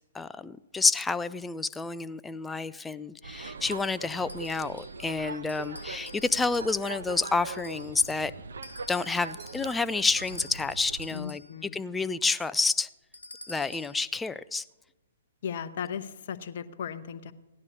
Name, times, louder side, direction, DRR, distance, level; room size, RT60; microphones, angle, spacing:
voice 1, 0.0-8.3 8.9-12.9 13.5-14.6, left 4 dB, 10° left, 0.3 m, -29 dB
sound 1, 3.2-11.1, right 4 dB, 65° right, 0.6 m, -42 dB
sound 2, 4.3-5.1 5.5-6.9 7.5-8.2 8.6-11.6 13.1-14.0, left 2 dB, 80° left, 1.3 m, -49 dB
sound 3, 6.5-7.1 9.4-9.9 10.1-10.9, right 6 dB, 40° right, 2.5 m, -56 dB
voice 2, 11.1-11.8 15.4-17.3, left 7 dB, 50° left, 0.7 m, -36 dB
17.5 x 11.5 x 2.8 m
figure-of-eight pair, 120°, 0 cm